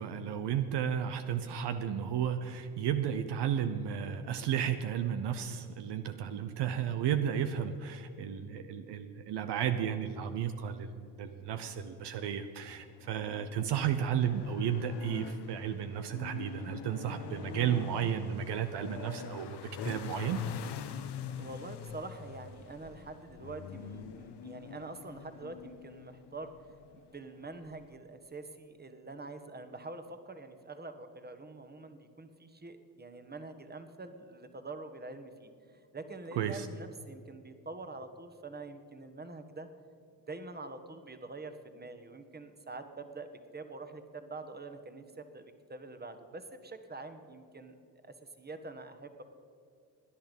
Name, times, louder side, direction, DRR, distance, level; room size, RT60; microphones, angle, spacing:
voice 1, 0.0-19.6 19.8-20.4 36.3-36.7, right 9 dB, 65° right, 8 dB, 0.9 m, -33 dB
sound 1, 11.3-28.0, left 7 dB, 60° left, 1.1 m, -44 dB
voice 2, 21.4-26.5 26.9-39.7 40.3-47.7 48.0-49.2, right 3 dB, 20° right, 8 dB, 1.5 m, -45 dB
17.0 x 10.5 x 5.4 m, 2.6 s
hypercardioid pair, 50°, 45 cm